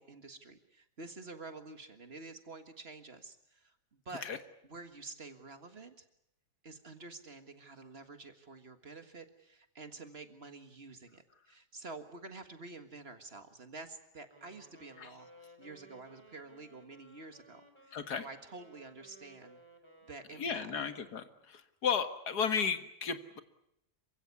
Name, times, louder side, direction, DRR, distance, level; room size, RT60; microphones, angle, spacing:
voice 1, 0.0-4.2 4.6-6.1 6.6-15.3 15.6-19.6 20.0-20.7, right 3 dB, 40° right, 8 dB, 1.9 m, -49 dB
Wind instrument woodwind instrument, 14.3-21.5, right 1 dB, 15° right, 3.6 m, -60 dB
voice 2, 17.9-18.3 20.4-23.4, left 6 dB, 80° left, 9 dB, 2.2 m, -34 dB
28.0 x 16.0 x 9.6 m, 0.78 s
omnidirectional pair, 1.7 m